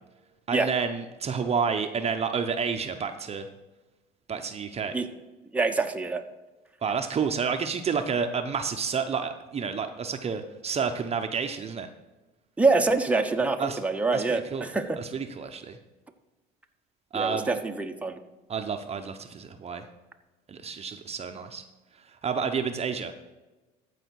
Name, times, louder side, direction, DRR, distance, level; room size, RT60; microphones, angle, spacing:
voice 1, 0.5-3.5 4.3-5.0 6.8-11.9 13.6-13.8 14.1-14.7 15.0-15.8 17.1-17.6 18.5-19.9 20.5-21.6 22.2-23.1, right 6 dB, 35° right, 6 dB, 0.8 m, -30 dB
voice 2, 5.5-6.2 12.6-15.0 17.1-18.2, right 3 dB, 5° right, 4 dB, 1.0 m, -25 dB
14.5 x 5.0 x 4.7 m, 1.1 s
supercardioid pair, 80°, 19 cm